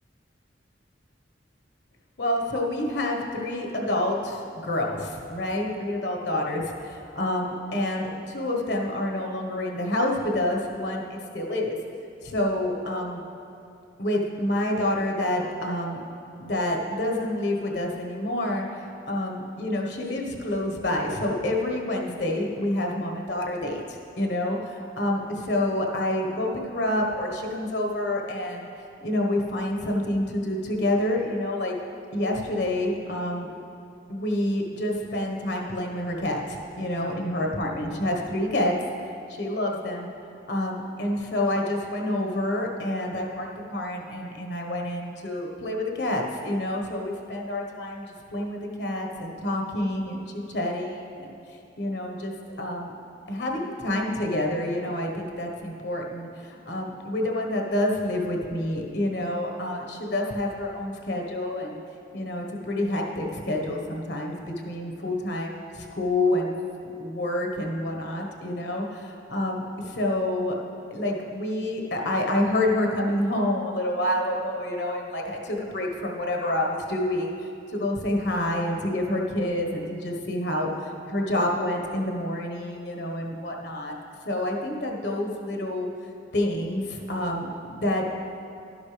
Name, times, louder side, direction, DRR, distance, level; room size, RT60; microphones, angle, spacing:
voice 1, 2.2-11.7 12.2-13.2 14.0-16.0 16.4-28.7 29.0-31.7 32.1-33.5 34.1-38.7 39.3-40.1 40.5-50.2 50.5-51.3 51.8-52.9 53.3-61.8 62.1-64.4 64.6-66.5 66.8-70.5 70.9-77.3 77.7-84.0 84.2-85.9 86.3-88.0, left 1 dB, 65° left, 1 dB, 1.4 m, -28 dB
12.0 x 10.5 x 3.4 m, 2.6 s
head